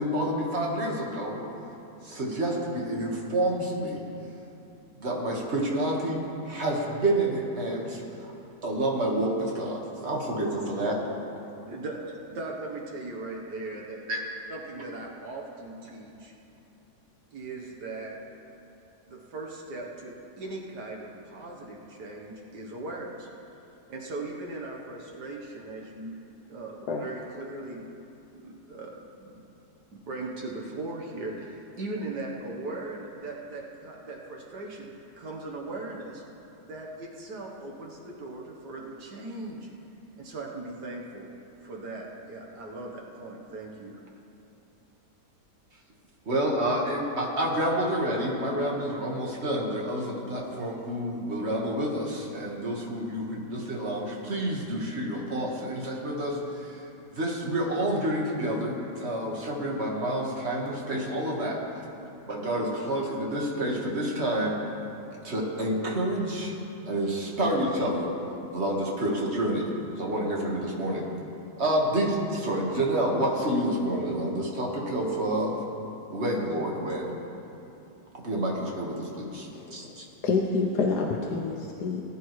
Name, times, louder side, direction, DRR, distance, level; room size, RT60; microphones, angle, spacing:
voice 1, 0.0-1.4 2.0-4.0 5.0-6.2 6.4-8.3 8.6-11.0 14.1-14.2 46.2-56.8 57.1-61.6 62.3-64.6 65.2-66.5 66.9-68.1 68.5-69.7 70.0-71.1 71.6-75.5 76.1-77.2 78.1-80.0, right 1 dB, 40° right, -2 dB, 1.8 m, -28 dB
voice 2, 11.6-14.0 14.5-16.3 17.3-18.1 19.1-23.3 23.9-26.1 26.5-27.8 28.3-29.4 29.9-36.2 36.6-39.7 40.2-41.3 41.6-44.0, right 2 dB, 75° right, -1 dB, 1.7 m, -39 dB
voice 3, 79.5-80.0 80.2-82.0, left 4 dB, 75° left, 0 dB, 1.3 m, -28 dB
19.0 x 10.5 x 3.2 m, 2.9 s
omnidirectional pair, 1.8 m